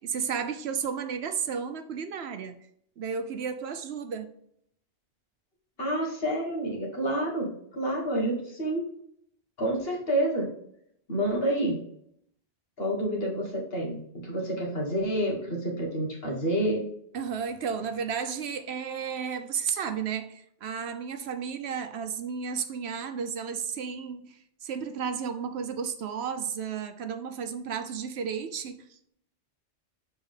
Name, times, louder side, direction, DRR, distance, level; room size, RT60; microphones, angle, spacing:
voice 1, 0.0-2.5 3.0-4.3 17.1-29.0, right 6 dB, 70° right, 8 dB, 0.9 m, -33 dB
voice 2, 5.8-8.9 9.6-10.5 11.1-11.8 12.8-16.8, right 1 dB, 60° left, -2 dB, 1.9 m, -28 dB
7.2 x 4.3 x 3.7 m, 0.70 s
omnidirectional pair, 1.2 m